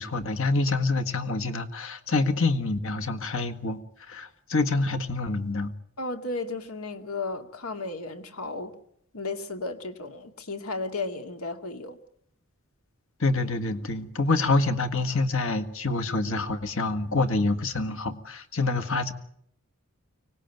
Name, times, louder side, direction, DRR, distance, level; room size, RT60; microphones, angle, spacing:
voice 1, 0.0-5.7 13.2-19.1, left 3 dB, 65° left, 8 dB, 1.7 m, -26 dB
voice 2, 6.0-8.7 9.1-12.0, left 3 dB, 80° left, 7 dB, 2.2 m, -34 dB
25.0 x 19.0 x 9.3 m, 0.72 s
head